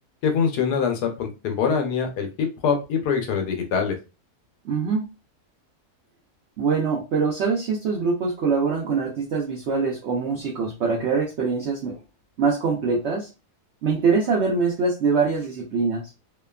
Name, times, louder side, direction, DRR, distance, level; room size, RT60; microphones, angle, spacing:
voice 1, 0.2-4.0, left 6 dB, 85° left, 4 dB, 1.2 m, -24 dB
voice 2, 4.6-5.0 6.6-12.0 12.4-13.3 13.8-16.0, right 5 dB, 65° right, -2 dB, 0.6 m, -23 dB
2.8 x 2.2 x 2.2 m, 0.30 s
omnidirectional pair, 1.7 m